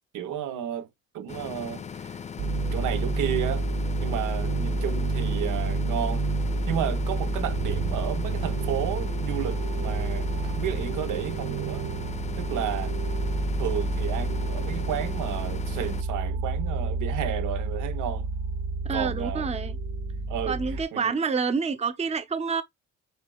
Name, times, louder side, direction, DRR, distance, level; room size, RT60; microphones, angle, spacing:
voice 1, 0.1-0.9 1.1-2.2 2.6-3.7 4.0-6.2 6.7-11.9 12.4-12.9 13.6-18.3 18.9-19.5 20.3-20.6 20.9-21.1, right 10 dB, 90° right, 1.0 m, -32 dB
sound 1, 1.3-16.0, left 7 dB, 25° left, 0.4 m, -39 dB
sound 2, 2.4-20.8, right 2 dB, 75° right, 0.7 m, -29 dB
voice 2, 18.8-19.8 20.4-22.6, right 5 dB, 20° right, 0.6 m, -28 dB
8.0 x 2.7 x 2.3 m
cardioid pair, 90°, 30 cm